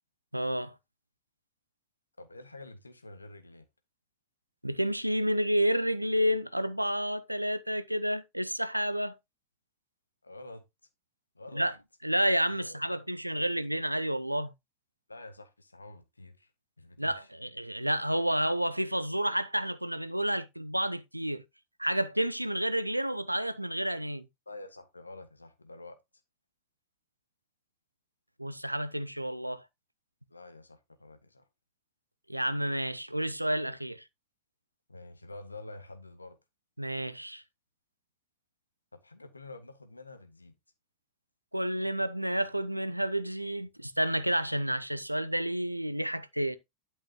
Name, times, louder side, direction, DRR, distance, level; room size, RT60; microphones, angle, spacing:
voice 1, 0.3-0.7 4.6-9.2 11.5-11.7 12.0-14.5 17.0-21.4 21.8-24.3 28.4-29.6 32.3-34.0 36.8-37.4 41.5-46.6, equal, 90° right, 0.7 m, -30 dB
voice 2, 2.2-3.7 10.2-10.6 11.3-11.7 12.5-13.0 13.3-13.4 15.1-16.5 16.8-17.3 24.4-26.0 30.3-31.5 34.9-36.4 39.0-40.5, left 2 dB, 80° left, 1.6 m, -48 dB
11.5 x 5.7 x 2.9 m
figure-of-eight pair, 90°, 0 cm